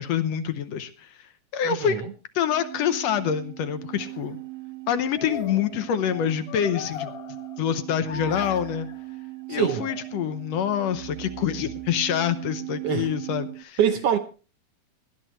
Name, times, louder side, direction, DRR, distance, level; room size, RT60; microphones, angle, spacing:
voice 1, 0.0-2.0 2.4-4.4 4.9-7.1 7.6-8.9 9.5-13.8, left 9 dB, 70° left, 1.8 m, -26 dB
voice 2, 1.7-2.0 9.5-9.9 12.8-13.1 13.8-14.2, right 9 dB, 70° right, 1.5 m, -24 dB
sound 1, 2.4-13.6, right 13 dB, 55° right, 1.4 m, -39 dB
sound 2, 4.0-4.3 5.1-7.8 8.1-9.0 9.5-10.4, left 7 dB, 55° left, 2.4 m, -40 dB
19.5 x 12.0 x 3.1 m
omnidirectional pair, 3.6 m